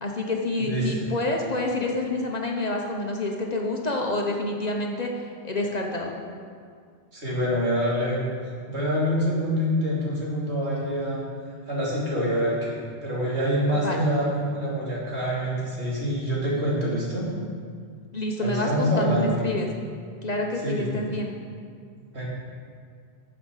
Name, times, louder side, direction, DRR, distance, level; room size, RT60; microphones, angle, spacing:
voice 1, 0.0-5.1 5.4-6.1 13.7-14.0 18.1-19.7 20.2-21.3, left 2 dB, 40° left, 0 dB, 1.1 m, -28 dB
voice 2, 0.6-1.1 7.1-8.2 8.7-11.2 11.7-17.3 18.4-19.4 20.6-20.9 22.1-22.3, equal, 80° right, -6 dB, 3.1 m, -26 dB
9.2 x 7.3 x 6.5 m, 2.1 s
omnidirectional pair, 1.1 m